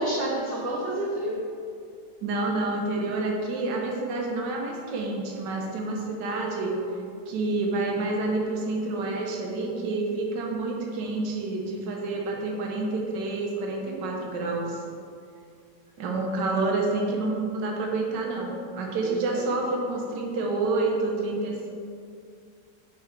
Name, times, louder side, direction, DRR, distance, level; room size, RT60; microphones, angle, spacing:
voice 1, 0.0-1.4 13.8-14.1 19.0-19.5, right 1 dB, 55° right, -3 dB, 0.8 m, -30 dB
voice 2, 2.2-6.9 7.3-14.8 16.0-21.7, right 2 dB, 80° right, 0 dB, 1.5 m, -28 dB
8.7 x 3.7 x 4.5 m, 2.3 s
omnidirectional pair, 1.9 m